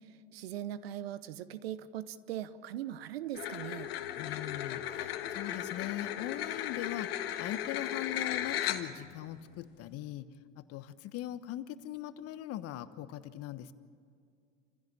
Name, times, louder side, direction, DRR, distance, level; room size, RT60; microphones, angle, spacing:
voice 1, 0.3-3.9, right 12 dB, 80° right, 15 dB, 1.0 m, -40 dB
sound 1, 3.3-9.1, left 11 dB, 80° left, 1.6 m, -36 dB
voice 2, 4.2-7.1 7.4-10.3 10.5-13.7, left 13 dB, 50° left, 13 dB, 1.2 m, -40 dB
28.0 x 16.0 x 8.6 m, 2.2 s
hypercardioid pair, 85°, 30 cm